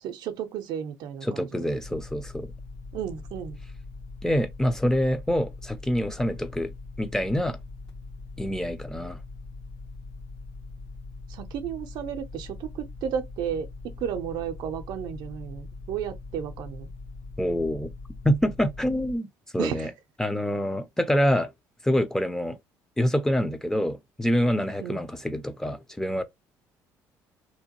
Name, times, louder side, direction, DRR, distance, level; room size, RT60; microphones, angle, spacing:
voice 1, 0.0-1.7 2.9-3.6 11.3-16.9 19.6-19.9 24.8-25.0, right 8 dB, 70° right, 0.5 m, -33 dB
voice 2, 1.2-2.5 4.2-6.7 7.0-7.6 8.4-9.2 17.4-17.9 18.2-19.3 19.5-19.9 20.2-21.5 21.8-22.6 23.0-26.2, equal, 5° left, 0.5 m, -26 dB
sound 1, 1.8-19.2, left 3 dB, 60° left, 1.0 m, -42 dB
2.8 x 2.2 x 2.8 m
supercardioid pair, 90°, 8 cm